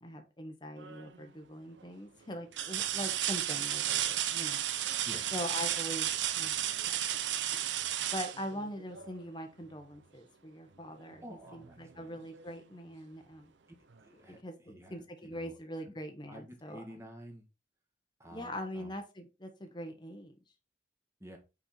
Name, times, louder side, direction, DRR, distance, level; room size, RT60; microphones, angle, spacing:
voice 1, 0.0-4.6 5.3-6.1 6.3-6.6 6.9-7.0 7.5-7.6 8.1-11.2 11.5-13.5 14.3-14.5 14.9-16.8 18.3-20.4, equal, 25° left, 5 dB, 0.9 m, -42 dB
sound 1, 0.8-1.2 1.8-1.9 2.5-9.2 11.0-11.1 11.6-12.6 13.9-14.0, right 11 dB, 80° right, 0.6 m, -33 dB
voice 2, 11.2-12.3 14.0-15.6 15.9-16.0 16.3-17.4 18.2-18.9 21.2-21.4, equal, 15° right, 2 dB, 1.6 m, -50 dB
5.6 x 5.4 x 4.3 m, 0.29 s
head